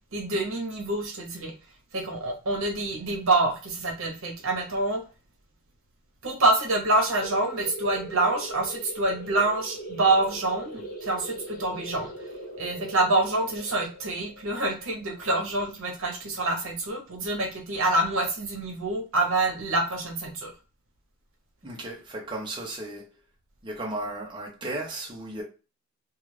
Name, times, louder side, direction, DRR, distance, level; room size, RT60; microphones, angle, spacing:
voice 1, 0.1-1.5 1.9-5.0 6.2-12.1 12.6-20.5, right 2 dB, 65° right, 0.8 m, -26 dB
sound 1, 7.1-16.4, right 1 dB, 40° left, 0.8 m, -40 dB
voice 2, 21.6-23.2 23.6-25.4, right 1 dB, 20° right, 0.6 m, -35 dB
2.3 x 2.3 x 3.1 m
head